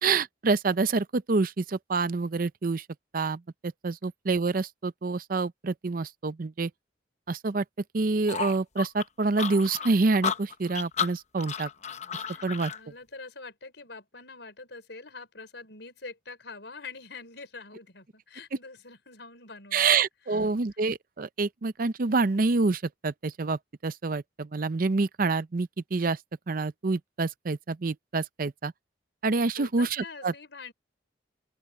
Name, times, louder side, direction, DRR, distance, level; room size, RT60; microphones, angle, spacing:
voice 1, 0.0-2.8 3.1-6.7 7.3-7.6 7.9-11.7 12.4-12.7 19.7-26.2 26.5-28.7 29.2-30.3, right 3 dB, 50° right, 0.6 m, -27 dB
sound 1, 8.3-12.8, left 7 dB, 40° left, 0.8 m, -33 dB
voice 2, 12.3-20.0 20.3-20.5 29.6-30.7, left 4 dB, 75° left, 5.0 m, -45 dB
open air
head